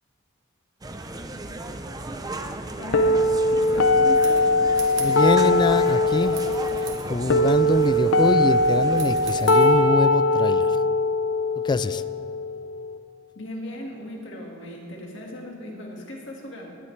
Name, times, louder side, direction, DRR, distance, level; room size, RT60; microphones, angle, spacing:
sound 1, 0.8-9.4, right 2 dB, 20° right, 0.6 m, -36 dB
voice 1, 2.8-3.2 3.5-4.5 13.4-16.7, left 1 dB, 70° left, -1 dB, 1.9 m, -37 dB
sound 2, 2.9-12.9, left 1 dB, 85° left, 0.6 m, -21 dB
sound 3, 3.7-9.8, right 8 dB, 70° right, 1.8 m, -44 dB
voice 2, 5.0-6.4 7.1-10.7 11.6-12.0, left 3 dB, 25° left, 15 dB, 0.3 m, -24 dB
18.0 x 12.0 x 3.3 m, 2.3 s
head